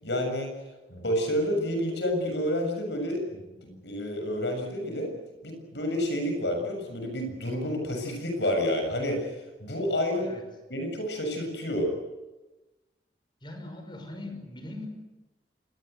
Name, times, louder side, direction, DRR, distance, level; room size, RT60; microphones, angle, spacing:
voice 1, 0.0-0.5 0.9-5.1 5.4-10.4 10.7-11.9, equal, 80° left, 4 dB, 7.0 m, -29 dB
voice 2, 13.4-14.9, left 2 dB, 25° left, 5 dB, 5.7 m, -40 dB
26.0 x 21.0 x 8.2 m, 1.1 s
head